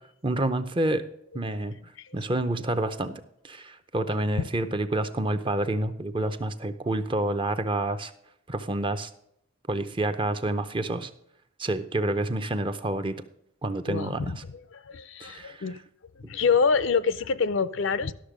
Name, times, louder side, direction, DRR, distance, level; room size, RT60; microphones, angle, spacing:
voice 1, 0.2-1.0 1.3-1.8 2.1-8.1 8.5-9.1 9.7-11.1 11.6-13.2 13.6-14.3 15.2-15.6, right 1 dB, 25° right, 0.6 m, -28 dB
voice 2, 13.9-14.4 14.7-15.8 16.2-18.1, left 5 dB, 65° left, 0.5 m, -26 dB
11.5 x 6.7 x 5.0 m
head